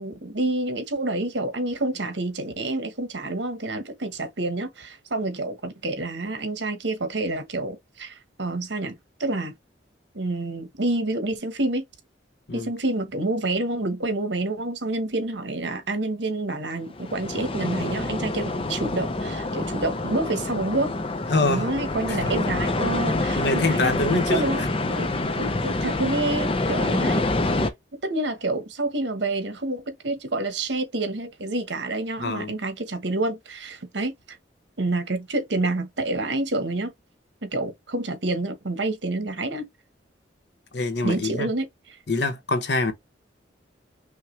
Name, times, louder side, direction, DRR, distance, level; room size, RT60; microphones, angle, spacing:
voice 1, 0.0-8.9 9.2-9.5 10.1-11.8 12.5-20.9 21.4-24.6 25.0-25.1 25.4-27.3 27.9-34.4 34.8-36.9 37.4-39.7 41.0-41.7, right 2 dB, 75° right, 1.2 m, -28 dB
sound 1, 16.9-27.7, left 2 dB, 30° left, 0.5 m, -27 dB
voice 2, 21.3-21.7 22.1-22.3 23.1-24.4 25.4-25.5 32.2-32.5 40.7-41.5 42.1-42.9, left 3 dB, 65° left, 0.9 m, -25 dB
5.7 x 2.2 x 3.2 m
head